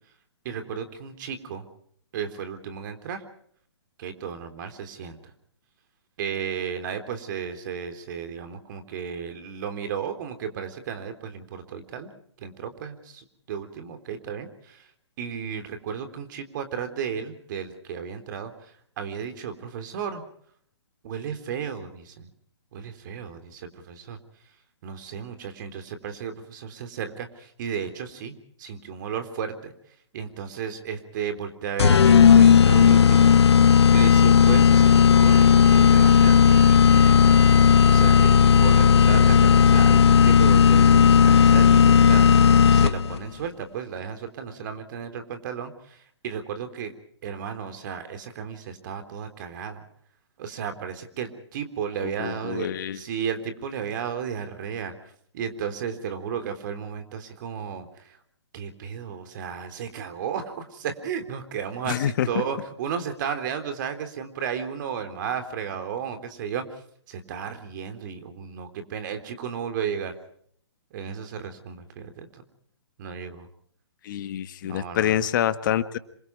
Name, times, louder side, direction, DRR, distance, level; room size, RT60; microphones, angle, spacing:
voice 1, 0.5-1.6 2.1-3.2 4.0-5.2 6.2-12.1 12.4-14.8 15.2-18.5 19.0-20.2 21.0-22.3 22.7-24.2 24.8-29.7 30.1-33.4 33.9-46.0 46.2-46.9 47.2-49.8 50.4-54.9 55.3-57.9 58.5-66.6 67.1-70.1 70.9-72.4 73.0-73.5 74.6-75.3, right 7 dB, 45° right, 8 dB, 3.6 m, -34 dB
sound 1, 31.8-43.2, left 7 dB, 65° left, 1.1 m, -15 dB
voice 2, 52.0-53.0 61.9-62.3 74.0-76.0, left 10 dB, 45° left, 12 dB, 1.5 m, -26 dB
27.5 x 23.5 x 4.7 m, 0.63 s
hypercardioid pair, 135°, 15 cm